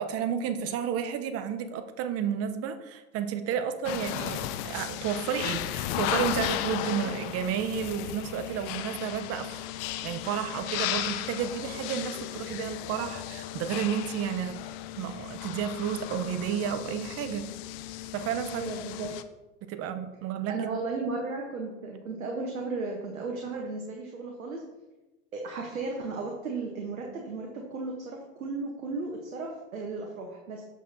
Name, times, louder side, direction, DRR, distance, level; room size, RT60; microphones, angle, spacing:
voice 1, 0.0-9.5 10.0-14.6 15.0-17.5 18.1-18.7 19.7-20.5, right 8 dB, 35° right, 9 dB, 0.8 m, -31 dB
sound 1, 3.8-19.2, left 13 dB, 45° left, 0.5 m, -35 dB
voice 2, 18.5-19.1 20.5-24.6 25.3-30.6, right 3 dB, 90° right, 0 dB, 1.1 m, -35 dB
7.4 x 6.5 x 2.7 m, 1.1 s
hypercardioid pair, 95°, 40 cm